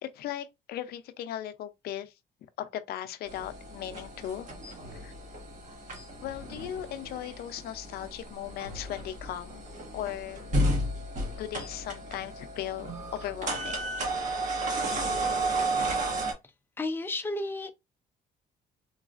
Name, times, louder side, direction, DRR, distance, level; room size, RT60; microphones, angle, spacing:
voice 1, 0.0-2.1 2.6-4.5 4.9-5.1 6.2-9.7 9.9-10.9 11.4-13.8, left 11 dB, 65° left, 0.5 m, -38 dB
sound 1, 3.3-16.3, right 1 dB, 50° right, 1.3 m, -33 dB
voice 2, 16.8-17.7, left 2 dB, 15° left, 0.5 m, -32 dB
3.8 x 2.4 x 2.4 m
cardioid pair, 110°, 17 cm